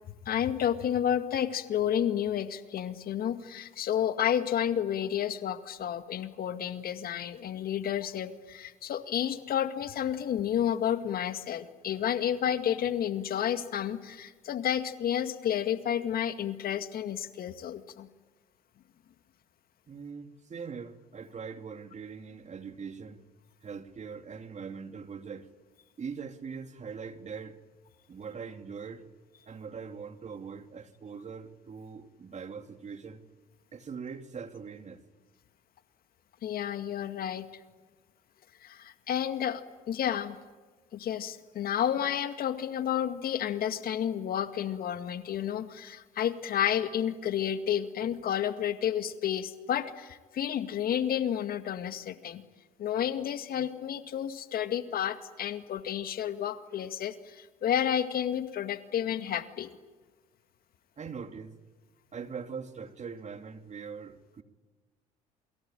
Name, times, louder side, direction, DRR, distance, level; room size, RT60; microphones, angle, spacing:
voice 1, 0.3-18.1 36.4-37.5 38.6-40.4 40.9-52.4 52.8-59.7, left 9 dB, 55° left, 2.0 m, -31 dB
voice 2, 19.9-23.2 23.6-25.5 26.0-27.6 28.1-29.1 29.5-33.2 33.7-35.0 61.0-61.6 62.1-64.4, right 6 dB, 40° right, 2.7 m, -42 dB
28.0 x 22.5 x 9.1 m
hypercardioid pair, 60°, 18 cm